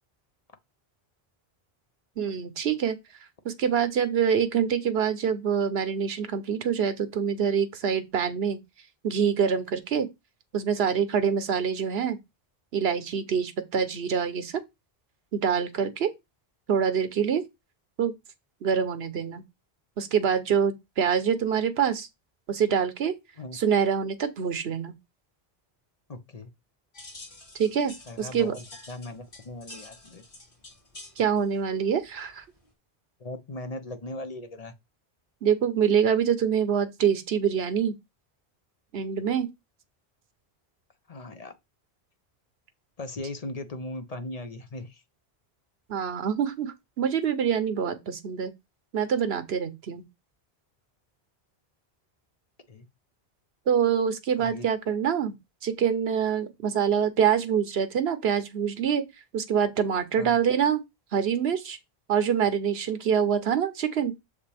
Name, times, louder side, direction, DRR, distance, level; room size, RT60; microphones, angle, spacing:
voice 1, 2.2-3.0 3.4-8.6 9.0-10.1 10.5-12.2 12.7-14.5 15.3-16.1 16.7-17.4 18.0-18.1 18.6-19.4 20.0-22.1 22.5-23.1 23.5-24.9 27.5-27.9 28.2-28.5 31.2-32.4 35.4-38.0 38.9-39.5 45.9-48.5 48.9-50.0 53.7-55.4 55.6-59.0 59.3-60.8 61.1-61.8 62.1-64.1, right 7 dB, 80° right, 1.1 m, -25 dB
voice 2, 26.1-26.5 28.1-30.3 33.2-34.7 41.1-41.5 43.0-45.0 52.7-52.9 54.4-54.7 60.2-60.4, left 2 dB, 40° left, 0.9 m, -38 dB
sound 1, 26.9-32.7, left 2 dB, 60° left, 2.5 m, -49 dB
6.7 x 5.0 x 3.4 m
omnidirectional pair, 1.0 m